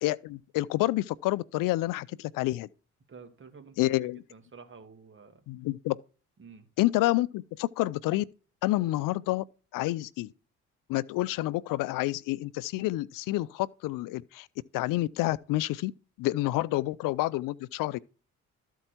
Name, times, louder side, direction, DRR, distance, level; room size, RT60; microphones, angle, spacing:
voice 1, 0.0-2.7 3.8-4.2 5.5-6.0 6.8-8.2 8.6-9.4 9.7-10.3 10.9-14.5 14.7-15.9 16.2-18.0, left 17 dB, 80° left, 0.5 m, -28 dB
voice 2, 3.1-5.4 6.4-6.7, right 5 dB, 35° right, 2.2 m, -51 dB
13.5 x 4.5 x 4.4 m
supercardioid pair, 65°, 32 cm